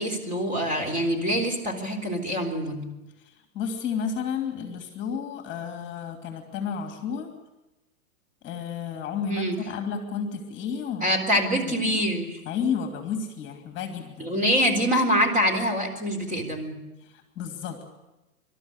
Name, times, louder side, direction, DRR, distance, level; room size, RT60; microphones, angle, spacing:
voice 1, 0.0-2.9 9.3-9.6 11.0-12.4 14.2-16.8, equal, 15° right, 3 dB, 3.9 m, -25 dB
voice 2, 3.5-7.3 8.4-11.1 11.6-12.0 12.4-14.4 17.4-17.9, left 6 dB, 25° left, 5 dB, 2.8 m, -32 dB
26.5 x 13.0 x 9.8 m, 1.0 s
hypercardioid pair, 125°, 44 cm